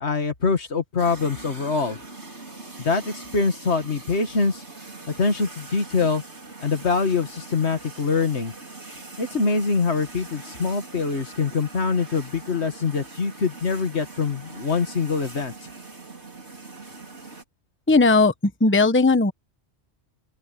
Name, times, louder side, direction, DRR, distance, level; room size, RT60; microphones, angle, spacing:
voice 1, 0.0-2.0 2.8-4.6 5.1-6.2 6.6-8.5 9.2-15.5, left 4 dB, 75° left, 2.2 m, -24 dB
sound 1, 1.0-17.4, right 3 dB, 80° right, 4.6 m, -42 dB
voice 2, 17.9-19.3, left 3 dB, 10° left, 1.0 m, -17 dB
open air
omnidirectional pair, 1.1 m